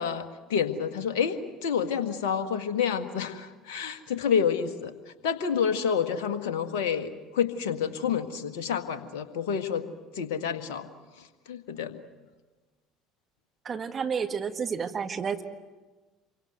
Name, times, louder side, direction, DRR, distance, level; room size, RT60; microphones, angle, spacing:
voice 1, 0.0-4.9 5.2-9.9 10.1-10.9 11.2-12.0, left 7 dB, 65° left, 8 dB, 1.7 m, -29 dB
voice 2, 13.7-15.4, right 6 dB, 35° right, 6 dB, 1.7 m, -30 dB
27.0 x 24.0 x 8.0 m, 1.2 s
figure-of-eight pair, 60°, 0 cm